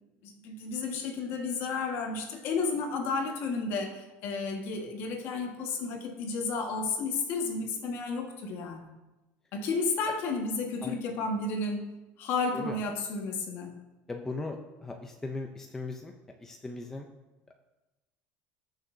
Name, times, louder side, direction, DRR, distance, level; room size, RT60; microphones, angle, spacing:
voice 1, 0.2-8.9 9.5-11.9 12.2-13.7, left 4 dB, 45° left, 3 dB, 1.5 m, -32 dB
voice 2, 14.1-16.1 16.4-17.1, left 3 dB, 10° left, 3 dB, 0.5 m, -38 dB
19.0 x 6.5 x 2.7 m, 1.1 s
cardioid pair, 170°, 5 cm